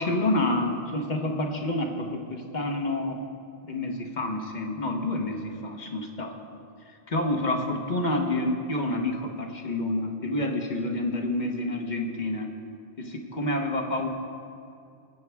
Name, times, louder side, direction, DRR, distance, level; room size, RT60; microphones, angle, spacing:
voice 1, 0.0-3.3 3.7-6.3 6.9-12.5 13.0-14.1, left 1 dB, 40° left, 3 dB, 1.2 m, -28 dB
20.5 x 8.2 x 3.5 m, 2.6 s
omnidirectional pair, 1.2 m